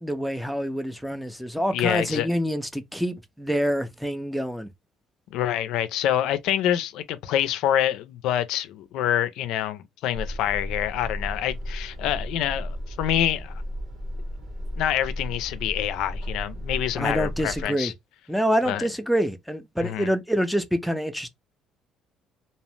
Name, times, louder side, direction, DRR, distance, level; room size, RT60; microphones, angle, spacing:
voice 1, 0.0-4.7 17.0-17.9 18.3-21.3, equal, ahead, 0.4 m, -26 dB
voice 2, 1.7-2.3 5.3-13.6 14.8-17.9 18.7-18.9 19.8-20.1, left 11 dB, 80° left, 0.3 m, -26 dB
sound 1, 10.1-17.7, equal, 60° right, 1.1 m, -34 dB
2.7 x 2.0 x 3.0 m
cardioid pair, 110°, 0 cm